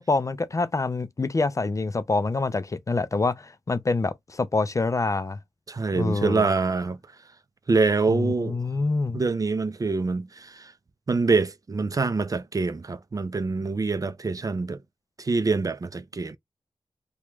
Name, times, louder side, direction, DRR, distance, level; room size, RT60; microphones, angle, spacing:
voice 1, 0.0-5.4 6.0-6.4 8.1-9.2, left 3 dB, 30° left, 0.4 m, -26 dB
voice 2, 5.7-7.0 7.7-8.6 9.1-10.7 11.1-14.8 15.2-16.4, right 4 dB, 35° right, 0.4 m, -25 dB
3.0 x 2.2 x 3.2 m
wide cardioid pair, 75°, 10 cm